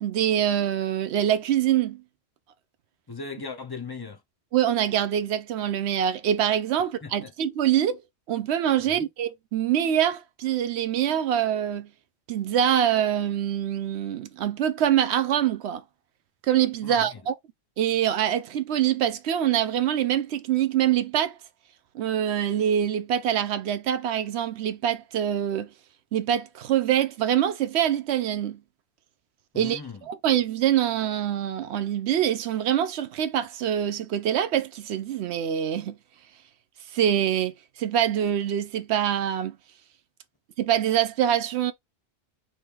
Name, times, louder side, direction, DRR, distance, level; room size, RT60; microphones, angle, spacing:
voice 1, 0.0-2.0 4.5-8.0 8.3-11.9 12.3-15.8 16.5-17.3 17.8-21.4 21.9-25.7 26.1-28.6 29.6-29.8 30.1-36.0 36.9-37.5 37.8-39.6 40.6-41.7, right 10 dB, 85° right, 0.9 m, -24 dB
voice 2, 3.1-4.2 7.0-7.3 8.8-9.1 16.8-17.2 29.5-30.1, left 4 dB, 25° left, 0.6 m, -38 dB
3.5 x 2.9 x 4.5 m
omnidirectional pair, 1.1 m